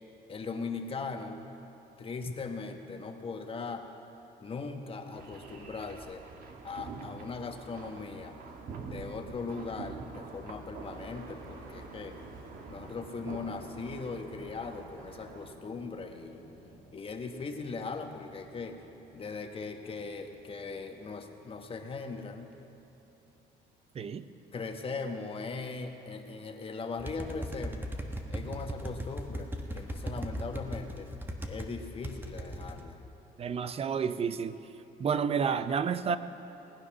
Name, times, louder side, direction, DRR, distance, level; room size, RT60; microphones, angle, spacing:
voice 1, 0.3-1.4 2.0-3.9 4.4-6.3 6.6-8.3 8.9-12.2 12.7-16.4 16.9-18.8 19.1-22.5 24.5-27.9 28.3-31.1 31.5-33.0, left 4 dB, 35° left, 5 dB, 1.3 m, -39 dB
sound 1, 5.1-15.5, right 4 dB, 55° right, 1.5 m, -46 dB
sound 2, 10.8-24.8 25.3-26.0, right 2 dB, 85° right, 2.5 m, -54 dB
sound 3, 27.0-31.7 32.0-32.8, equal, 10° right, 1.2 m, -37 dB
voice 2, 33.4-34.6 35.0-36.2, right 6 dB, 35° right, 13 dB, 0.6 m, -30 dB
19.0 x 9.7 x 6.1 m, 3.0 s
cardioid pair, 110°, 17 cm